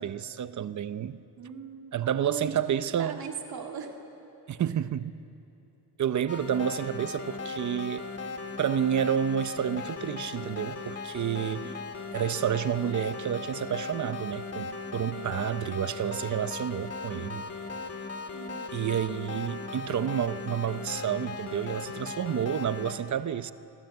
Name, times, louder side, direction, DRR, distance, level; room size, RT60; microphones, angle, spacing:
voice 1, 0.0-1.2 1.9-3.2 4.5-5.1 6.0-8.0 8.6-11.8 12.1-17.5 18.7-23.5, right 9 dB, 45° right, 0.7 m, -30 dB
voice 2, 1.4-2.0 2.2-4.0 11.5-11.7 18.3-18.9, right 6 dB, 65° right, 2.8 m, -40 dB
sound 1, 6.3-22.9, left 4 dB, 35° left, 2.3 m, -38 dB
26.0 x 24.0 x 8.0 m
wide cardioid pair, 160°, 41 cm